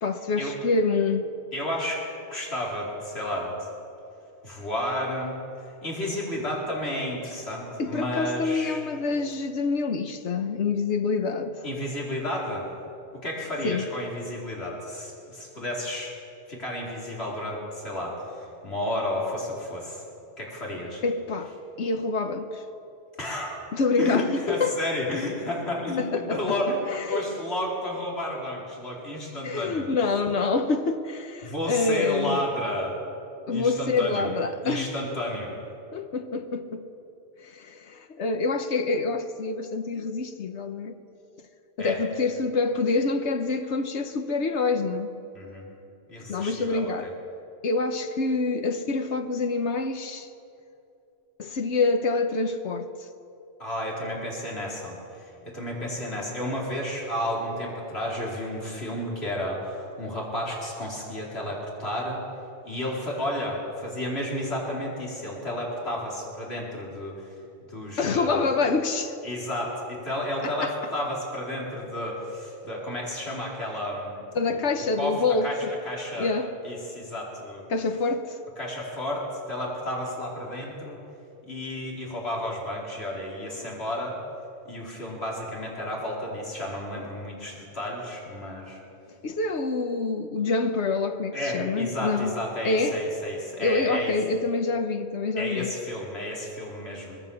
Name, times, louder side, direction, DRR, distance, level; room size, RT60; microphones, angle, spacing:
voice 1, 0.0-1.3 7.8-11.6 13.6-13.9 21.0-21.5 21.8-22.6 23.7-24.8 26.0-26.6 26.9-27.3 29.4-32.4 33.5-34.9 35.9-36.9 37.4-40.9 41.8-45.1 46.3-47.1 47.6-50.3 51.4-52.9 68.0-69.2 70.4-70.7 74.3-75.8 76.1-76.5 77.7-78.4 89.2-92.4 92.6-93.0 93.6-95.7, left 3 dB, 90° left, 1.4 m, -26 dB
voice 2, 1.5-2.0 2.3-3.7 4.4-8.8 11.6-12.7 13.1-16.1 16.5-20.0 20.4-21.0 23.2-23.6 24.0-29.9 31.4-33.0 33.5-34.3 34.6-35.5 41.8-42.0 45.3-45.7 46.1-47.1 53.6-62.2 62.6-67.3 67.7-68.6 69.2-74.2 74.5-74.6 75.0-76.4 76.6-77.6 78.6-81.0 81.5-84.2 84.6-88.8 91.3-94.1 95.4-97.2, left 1 dB, 65° left, 4.8 m, -32 dB
25.0 x 21.0 x 7.2 m
omnidirectional pair, 1.1 m